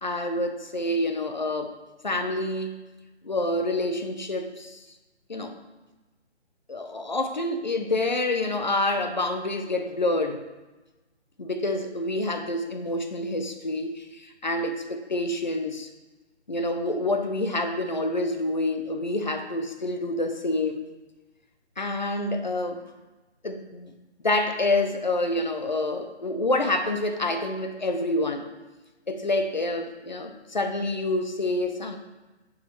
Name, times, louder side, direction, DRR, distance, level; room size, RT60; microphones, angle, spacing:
voice 1, 0.0-1.7 2.0-2.8 3.2-4.8 5.3-5.6 6.7-10.4 11.4-15.9 16.5-20.9 21.8-22.8 23.4-23.9 24.2-28.5 29.1-32.0, left 2 dB, 40° left, 7 dB, 0.5 m, -27 dB
9.6 x 4.8 x 3.1 m, 1.1 s
hypercardioid pair, 180°, 35 cm